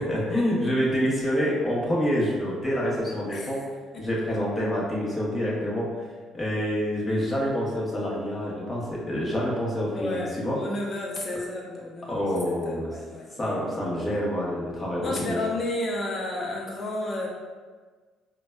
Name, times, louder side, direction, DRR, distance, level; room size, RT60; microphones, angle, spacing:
voice 1, 0.0-3.6 4.0-6.1 6.3-10.6 12.1-12.9 13.4-15.4, equal, 20° left, -5 dB, 1.0 m, -27 dB
voice 2, 3.3-3.6 3.9-4.0 9.9-13.5 15.0-17.3, left 2 dB, 40° left, -2 dB, 0.7 m, -32 dB
3.8 x 2.3 x 2.3 m, 1.4 s
supercardioid pair, 70°, 0 cm